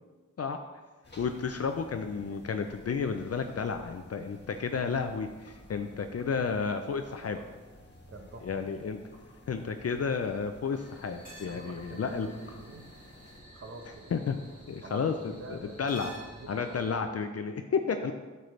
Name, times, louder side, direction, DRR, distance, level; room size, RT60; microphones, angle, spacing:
sound 1, 1.0-13.4, left 1 dB, 35° left, 1.6 m, -54 dB
voice 1, 1.2-7.4 8.4-9.0 9.5-12.3 14.1-14.4 14.7-15.1 15.5-16.1 16.5-18.1, left 5 dB, 55° left, 6 dB, 0.5 m, -32 dB
voice 2, 7.0-7.5 8.1-8.7 11.4-12.9 13.5-14.1 14.8-17.0, right 2 dB, 45° right, 4 dB, 1.0 m, -46 dB
sound 2, 10.7-17.0, equal, 30° right, 2.5 m, -51 dB
8.6 x 6.7 x 3.2 m, 1.3 s
wide cardioid pair, 75°, 30 cm